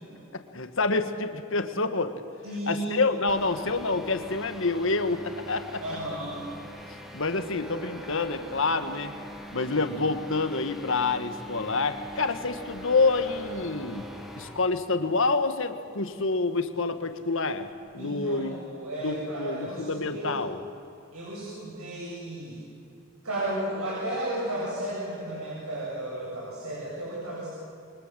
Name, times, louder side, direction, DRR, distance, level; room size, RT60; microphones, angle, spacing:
voice 1, 0.3-2.2 2.7-5.8 6.9-9.1 9.5-14.1 14.4-18.5 19.0-20.6, left 3 dB, 60° left, 9 dB, 1.7 m, -27 dB
voice 2, 2.4-3.1 5.8-6.4 7.6-7.7 18.0-20.3 21.1-22.6 23.2-27.5, right 1 dB, 85° right, -6 dB, 7.6 m, -34 dB
sound 1, 3.3-14.7, equal, ahead, 2.3 m, -42 dB
29.5 x 24.0 x 7.7 m, 2.7 s
head